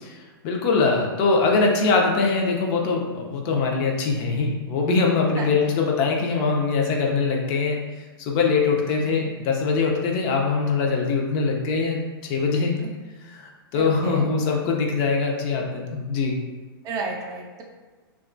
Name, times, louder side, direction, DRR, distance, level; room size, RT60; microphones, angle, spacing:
voice 1, 0.4-7.8 8.2-12.7 13.3-16.4, left 4 dB, 40° left, 0 dB, 0.5 m, -22 dB
voice 2, 5.4-5.8 9.0-9.2 12.8-12.9 13.7-14.3 16.8-17.6, right 3 dB, 30° right, 1 dB, 0.4 m, -33 dB
2.8 x 2.3 x 2.5 m, 1.4 s
hypercardioid pair, 120°, 13 cm